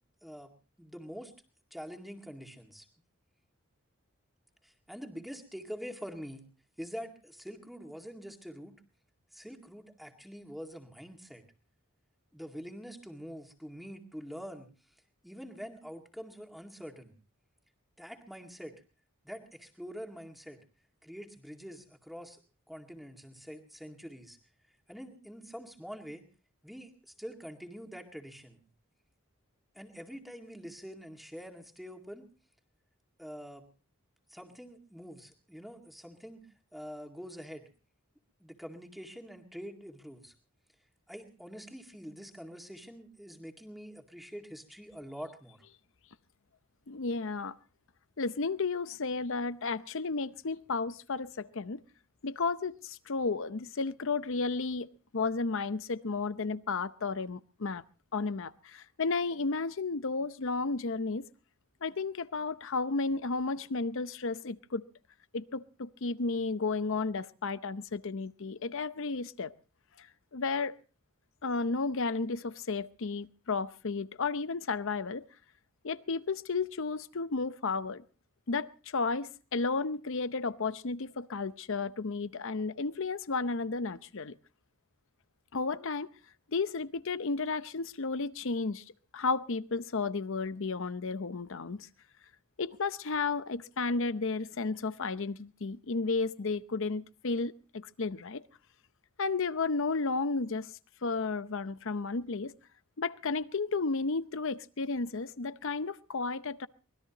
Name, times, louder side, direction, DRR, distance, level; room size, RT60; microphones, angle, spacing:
voice 1, 0.2-1.3 1.7-2.9 4.6-6.5 6.8-8.8 9.3-11.4 12.3-14.7 15.2-17.1 18.0-18.8 19.2-20.6 21.0-22.4 22.7-24.4 24.9-26.2 26.6-28.6 29.7-32.3 33.2-33.7 34.3-36.4 36.7-37.7 38.4-40.3 41.1-45.6, equal, ahead, 2.1 m, -45 dB
voice 2, 46.9-47.6 48.2-51.8 52.2-54.9 55.1-57.8 58.1-61.3 61.8-64.8 65.3-69.5 70.0-70.1 70.3-70.8 71.4-75.2 75.8-78.0 78.5-84.3 85.5-86.1 86.5-88.8 89.1-91.9 92.6-98.4 99.2-100.7 101.0-102.5 103.0-106.7, left 4 dB, 60° left, 0.7 m, -33 dB
24.5 x 20.0 x 3.0 m
head